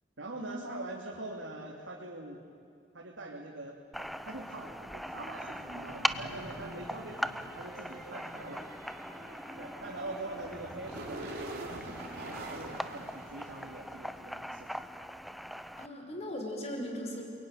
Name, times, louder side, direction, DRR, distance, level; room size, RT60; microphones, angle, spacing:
voice 1, 0.2-2.4 2.9-8.6 9.6-14.7 16.0-16.2, right 2 dB, 90° right, -2 dB, 2.8 m, -44 dB
sound 1, 3.9-15.9, equal, ahead, 0.6 m, -40 dB
sound 2, 5.3-14.0, right 2 dB, 55° right, 3.6 m, -46 dB
voice 2, 15.8-17.2, equal, 35° left, 2 dB, 5.2 m, -38 dB
29.0 x 22.0 x 9.3 m, 2.4 s
head